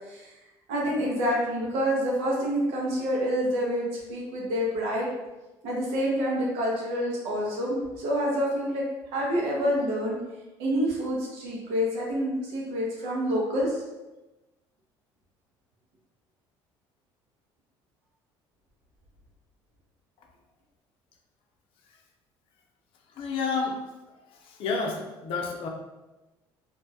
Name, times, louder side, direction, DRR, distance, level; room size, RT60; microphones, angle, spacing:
voice 1, 0.7-5.1 5.6-8.8 9.1-10.2 10.6-13.8, equal, 80° right, -3 dB, 0.9 m, -27 dB
voice 2, 23.2-23.8 24.4-25.7, left 4 dB, 60° left, 1 dB, 0.5 m, -30 dB
2.6 x 2.2 x 2.7 m, 1.1 s
cardioid pair, 105°, 10 cm